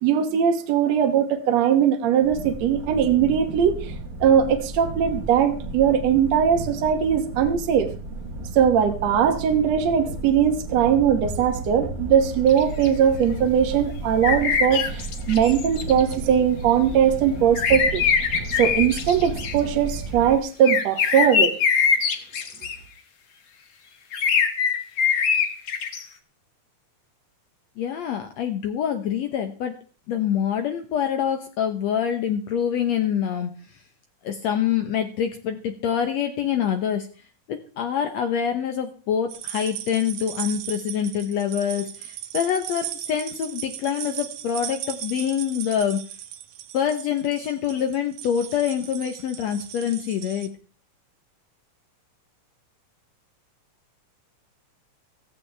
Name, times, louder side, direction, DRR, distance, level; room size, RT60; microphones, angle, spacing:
voice 1, 0.0-3.9 4.2-7.9 8.5-18.0 18.6-21.5, right 8 dB, 60° right, 2.2 m, -20 dB
sound 1, 2.2-20.4, right 2 dB, 35° right, 1.5 m, -34 dB
sound 2, 12.5-12.9 14.2-16.1 17.5-19.5 20.6-22.7 24.1-26.0, left 6 dB, 50° left, 1.7 m, -23 dB
voice 2, 27.8-29.7 30.1-33.8 34.2-37.1 37.5-46.0 46.7-50.5, left 8 dB, 65° left, 1.9 m, -25 dB
sound 3, 39.3-50.5, right 11 dB, 80° right, 2.6 m, -37 dB
16.0 x 15.0 x 3.4 m
omnidirectional pair, 3.7 m